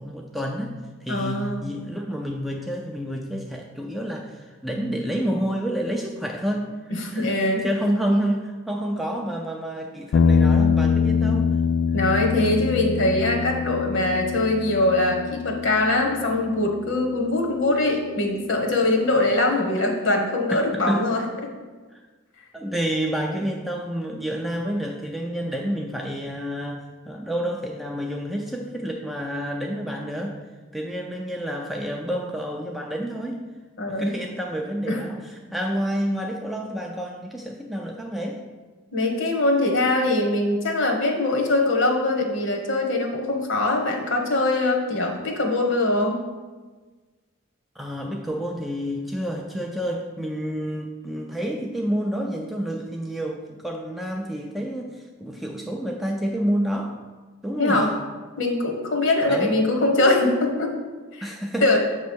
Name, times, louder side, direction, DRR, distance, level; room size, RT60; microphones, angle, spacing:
voice 1, 0.0-6.7 7.1-7.3 7.6-11.5 20.5-21.0 22.5-30.4 30.7-33.4 33.9-38.4 47.8-57.0 57.4-57.9 59.3-59.6 61.2-61.8, equal, ahead, 0 dB, 0.3 m, -29 dB
voice 2, 1.1-1.7 7.0-7.7 11.9-21.2 33.8-34.1 34.9-35.0 38.9-46.2 57.6-57.9 58.4-60.7 61.1-61.3 61.6-61.8, left 2 dB, 60° left, 1 dB, 1.1 m, -22 dB
sound 1, 10.1-18.5, left 6 dB, 75° left, 0.3 m, -24 dB
7.4 x 3.1 x 6.1 m, 1.3 s
head